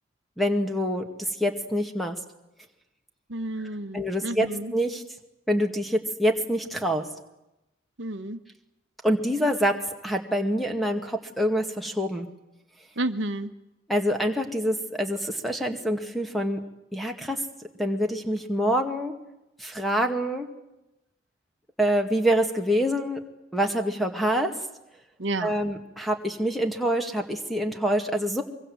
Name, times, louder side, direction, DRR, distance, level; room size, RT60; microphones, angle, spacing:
voice 1, 0.4-2.2 3.9-5.0 5.5-7.0 9.0-9.7 10.0-12.3 13.9-16.6 16.9-17.4 17.8-19.1 19.6-20.5 21.8-23.2 23.5-24.5 25.4-28.4, equal, ahead, 4 dB, 2.0 m, -26 dB
voice 2, 3.3-4.7 8.0-8.4 13.0-13.5 25.2-25.5, right 2 dB, 65° right, 9 dB, 1.3 m, -31 dB
24.0 x 23.5 x 7.9 m, 0.92 s
head